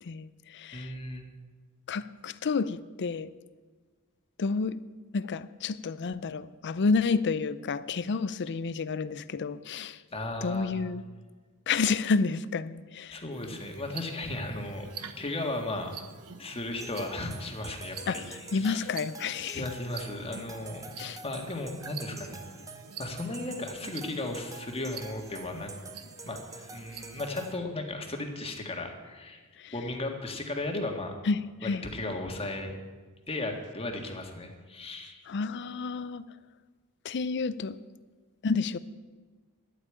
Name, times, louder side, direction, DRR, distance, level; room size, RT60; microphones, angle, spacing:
voice 1, 0.0-0.9 1.9-3.3 4.4-4.8 5.1-10.0 10.4-11.0 11.7-13.2 18.1-18.2 18.5-19.6 21.0-21.2 29.6-29.7 31.3-31.8 35.3-36.2 37.0-37.8 38.4-38.8, left 4 dB, 50° left, 16 dB, 0.5 m, -30 dB
voice 2, 0.7-1.2 10.1-10.7 13.1-14.9 15.2-16.0 16.4-18.8 19.5-20.9 21.2-22.4 23.0-25.7 26.2-29.4 29.7-31.1 31.6-32.7 33.3-35.2, left 2 dB, 25° left, 3 dB, 1.7 m, -35 dB
sound 1, 13.3-27.6, right 7 dB, 85° right, 0.9 m, -48 dB
sound 2, 16.8-27.5, right 4 dB, 15° right, 0.9 m, -47 dB
11.5 x 8.3 x 8.7 m, 1.4 s
head